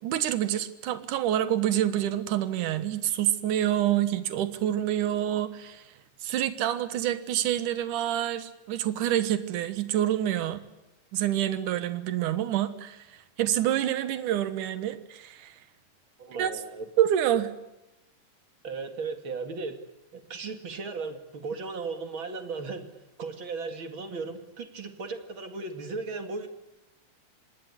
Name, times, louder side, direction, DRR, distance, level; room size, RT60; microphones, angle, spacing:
voice 1, 0.0-5.8 6.2-10.6 11.1-13.1 13.4-15.5 16.4-16.5 17.0-17.5, right 11 dB, 70° right, 11 dB, 2.8 m, -27 dB
voice 2, 16.2-16.9 18.6-19.8 20.1-22.9 23.2-26.5, right 4 dB, 40° right, 6 dB, 2.6 m, -36 dB
26.5 x 20.0 x 9.8 m, 0.95 s
omnidirectional pair, 3.9 m